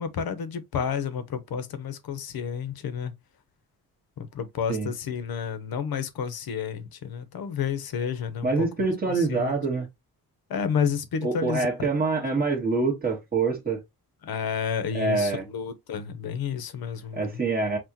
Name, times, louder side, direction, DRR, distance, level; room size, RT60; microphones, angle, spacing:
voice 1, 0.0-3.1 4.2-8.7 9.1-9.6 10.5-11.9 14.2-17.3, left 7 dB, 85° left, 1.0 m, -30 dB
voice 2, 8.4-9.9 11.2-13.8 14.9-15.4 17.1-17.8, right 3 dB, 25° right, 1.4 m, -25 dB
6.0 x 2.5 x 2.9 m
wide cardioid pair, 170°, 36 cm